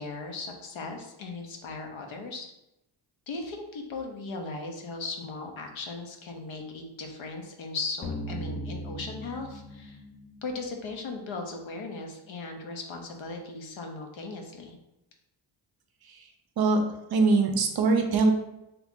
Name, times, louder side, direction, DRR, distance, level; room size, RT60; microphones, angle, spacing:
voice 1, 0.0-2.5 3.3-10.0 10.4-14.8, left 3 dB, 70° left, 3 dB, 0.7 m, -37 dB
sound 1, 8.0-10.9, equal, 25° left, 0.5 m, -38 dB
voice 2, 17.1-18.3, right 3 dB, 50° right, 5 dB, 0.5 m, -22 dB
3.0 x 2.4 x 3.5 m, 0.88 s
cardioid pair, 105°, 50 cm